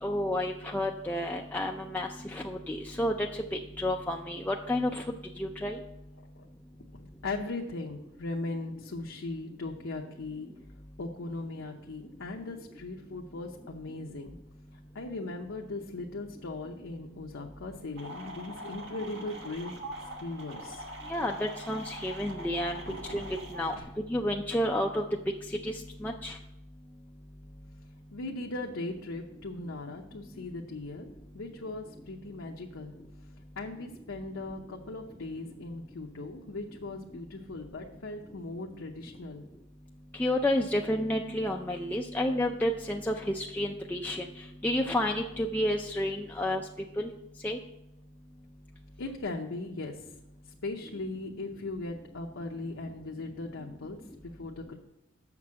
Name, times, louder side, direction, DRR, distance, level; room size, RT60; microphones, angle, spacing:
voice 1, 0.0-3.3 3.8-5.0 5.4-5.8 21.1-22.8 23.1-23.7 24.1-25.0 25.6-25.7 26.0-26.4 40.2-44.2 44.6-46.6 47.0-47.1 47.4-47.6, left 1 dB, 10° left, 0 dB, 0.4 m, -30 dB
voice 2, 7.0-10.5 11.0-14.4 14.9-19.8 20.2-20.8 22.9-23.2 23.8-23.9 28.1-31.1 31.3-32.9 33.6-39.5 49.0-49.9 50.6-54.0 54.4-54.8, left 2 dB, 75° left, 0 dB, 0.8 m, -38 dB
sound 1, 18.0-23.8, right 1 dB, 65° right, 1.5 m, -43 dB
6.7 x 6.1 x 7.4 m, 0.87 s
head